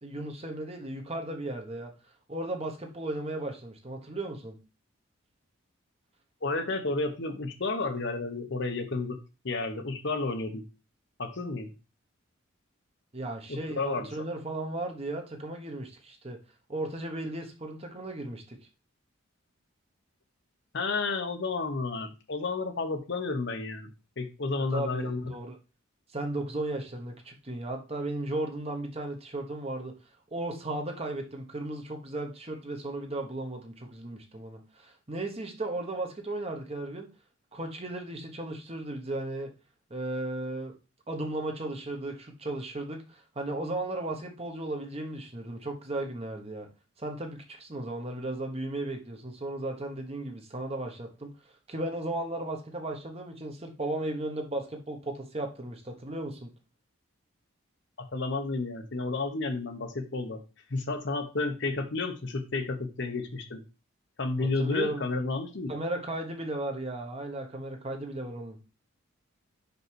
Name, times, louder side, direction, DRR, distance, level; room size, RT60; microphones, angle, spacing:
voice 1, 0.0-1.9 2.3-4.6 13.1-16.4 16.7-18.6 24.7-25.6 26.1-29.9 30.3-37.1 37.5-39.5 39.9-40.7 41.1-46.7 47.0-51.3 51.7-56.5 64.4-65.1 65.7-68.6, right 2 dB, 30° right, 4 dB, 1.3 m, -35 dB
voice 2, 6.4-9.2 9.4-10.6 11.2-11.7 13.5-14.1 20.7-23.9 24.2-25.3 58.0-60.4 60.7-63.6 64.2-65.7, left 3 dB, 60° left, 7 dB, 1.0 m, -31 dB
5.6 x 5.4 x 4.6 m, 0.31 s
head